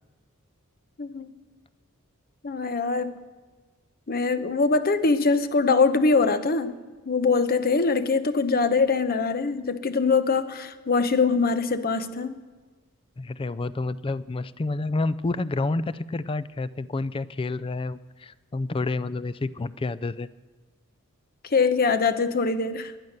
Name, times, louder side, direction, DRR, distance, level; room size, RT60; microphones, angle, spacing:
voice 1, 1.0-1.3 2.4-3.2 4.1-6.7 7.0-12.4 21.4-22.9, left 4 dB, 45° left, 11 dB, 0.8 m, -23 dB
voice 2, 13.2-20.3, left 3 dB, 25° left, 16 dB, 0.4 m, -29 dB
19.5 x 11.0 x 6.6 m, 1.4 s
head